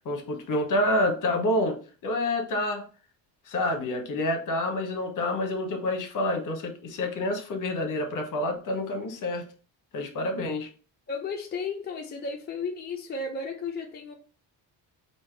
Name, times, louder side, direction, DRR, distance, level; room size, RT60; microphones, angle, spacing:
voice 1, 0.0-2.9 3.5-9.5 9.9-10.7, left 1 dB, 50° left, 1.0 m, -28 dB
voice 2, 11.1-14.1, left 4 dB, 25° left, 0.6 m, -34 dB
3.4 x 2.7 x 4.4 m
cardioid pair, 135°, 40 cm